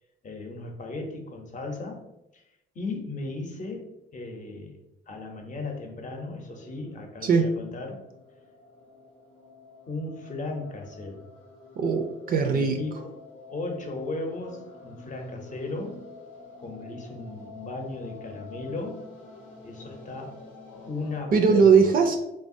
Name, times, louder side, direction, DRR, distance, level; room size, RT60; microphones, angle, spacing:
voice 1, 0.2-2.0 2.3-2.4 2.7-4.8 5.1-8.0 9.9-11.2 12.4-13.1 13.5-16.0 16.6-19.0 19.6-20.4 20.9-21.8, left 2 dB, 40° left, 2 dB, 0.7 m, -36 dB
sound 1, 5.7-21.2, left 3 dB, 90° left, 0.8 m, -48 dB
voice 2, 11.8-12.8 21.3-22.3, right 5 dB, 45° right, 5 dB, 0.4 m, -20 dB
3.2 x 2.1 x 2.6 m, 0.88 s
cardioid pair, 90°, 20 cm